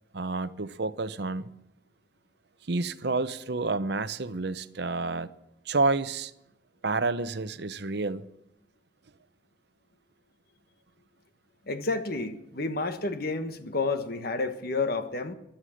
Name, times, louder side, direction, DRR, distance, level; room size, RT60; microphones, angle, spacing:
voice 1, 0.1-1.5 2.7-5.3 5.7-6.3 6.8-8.3, right 3 dB, 60° right, 0.8 m, -29 dB
voice 2, 11.7-15.3, left 3 dB, 50° left, 1.3 m, -30 dB
16.0 x 12.0 x 6.5 m
head